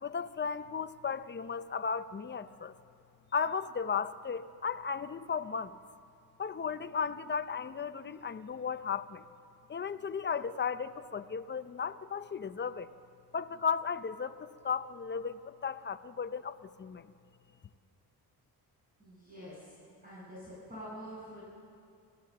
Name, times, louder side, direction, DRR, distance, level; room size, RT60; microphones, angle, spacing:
voice 1, 0.0-2.8 3.3-5.8 6.4-9.2 9.7-12.9 13.3-17.1, left 6 dB, 30° left, 12 dB, 0.6 m, -35 dB
voice 2, 19.0-19.8 20.0-21.4, equal, 20° right, -9 dB, 7.4 m, -46 dB
28.5 x 15.5 x 7.6 m, 2.5 s
wide cardioid pair, 150°, 39 cm